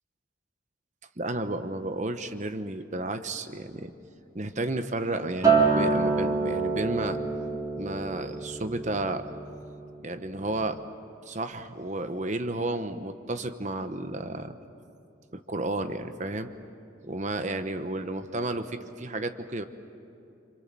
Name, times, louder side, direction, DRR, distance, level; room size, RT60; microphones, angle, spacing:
voice 1, 1.2-3.9 4.3-7.2 7.8-9.2 10.0-10.8 11.3-14.6 15.3-16.5 17.0-19.6, right 2 dB, 35° right, 9 dB, 1.0 m, -32 dB
Acoustic guitar, 5.4-9.9 10.2-10.6, right 4 dB, 15° right, 3.7 m, -27 dB
27.5 x 27.0 x 7.6 m, 2.7 s
head